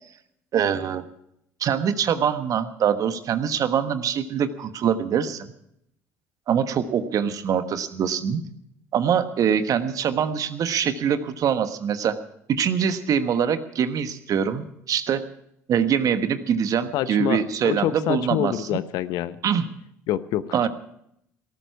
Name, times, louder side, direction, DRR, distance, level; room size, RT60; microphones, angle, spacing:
voice 1, 0.5-1.0 1.6-5.5 6.5-8.4 8.9-12.2 12.5-15.2 15.7-18.8 19.4-19.7 20.5-20.7, right 8 dB, 50° right, 10 dB, 1.3 m, -24 dB
voice 2, 16.9-19.4 20.1-20.7, left 12 dB, 60° left, 15 dB, 0.8 m, -27 dB
18.0 x 13.5 x 4.7 m, 0.74 s
hypercardioid pair, 60°, 8 cm